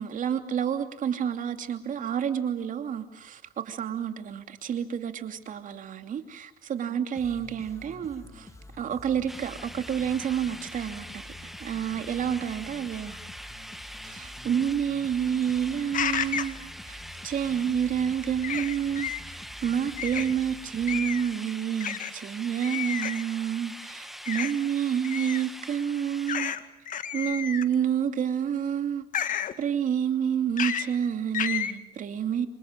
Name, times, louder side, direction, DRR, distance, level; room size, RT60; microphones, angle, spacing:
voice 1, 0.0-8.5 8.8-13.2 14.0-16.6 16.8-26.5 27.1-29.0 29.6-32.5, right 8 dB, 50° right, 2.7 m, -29 dB
sound 1, 7.1-21.7, left 2 dB, 15° left, 2.4 m, -48 dB
sound 2, 9.3-26.3, equal, ahead, 1.9 m, -44 dB
sound 3, 15.9-16.6 18.4-19.2 20.0-20.3 20.9-21.3 21.8-22.1 22.6-23.2 24.3-24.5 25.0-25.4 26.3-26.6 26.9-27.7 29.1-29.5 30.6-30.9 31.3-31.7, left 9 dB, 50° left, 2.0 m, -30 dB
28.5 x 25.5 x 7.5 m
cardioid pair, 110°, 17 cm